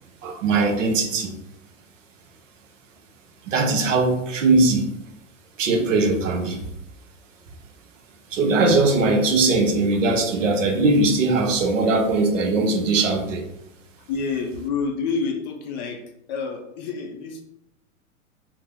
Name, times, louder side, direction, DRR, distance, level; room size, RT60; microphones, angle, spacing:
voice 1, 0.2-1.3 3.5-4.9 5.6-6.6 8.3-13.5, right 3 dB, 65° right, 4 dB, 0.7 m, -20 dB
voice 2, 14.1-16.0 16.3-17.4, left 5 dB, 35° left, 3 dB, 0.4 m, -28 dB
2.8 x 2.0 x 3.7 m, 0.79 s
figure-of-eight pair, 100°, 40 cm